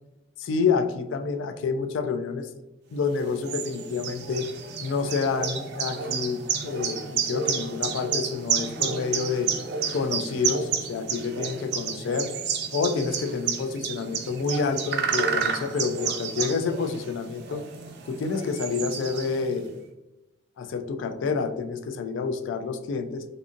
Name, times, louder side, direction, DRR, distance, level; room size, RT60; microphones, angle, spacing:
voice 1, 0.4-2.5 2.9-4.5 4.8-9.5 9.9-12.3 12.7-17.6 18.1-19.7 20.6-23.2, left 5 dB, 70° left, 7 dB, 0.3 m, -28 dB
sound 1, 3.1-19.6, right 6 dB, 55° right, 0.4 m, -31 dB
2.6 x 2.5 x 2.5 m, 1.0 s
head